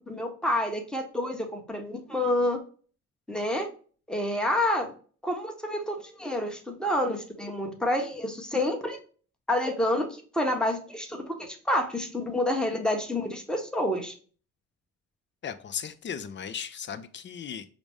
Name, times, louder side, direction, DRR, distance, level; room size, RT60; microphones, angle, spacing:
voice 1, 0.1-2.6 3.3-3.7 4.1-4.9 5.2-9.0 9.5-14.1, left 1 dB, 5° left, 2 dB, 0.9 m, -28 dB
voice 2, 15.4-17.7, left 8 dB, 40° left, 10 dB, 0.5 m, -36 dB
4.9 x 2.1 x 3.3 m, 0.41 s
cardioid pair, 90°, 30 cm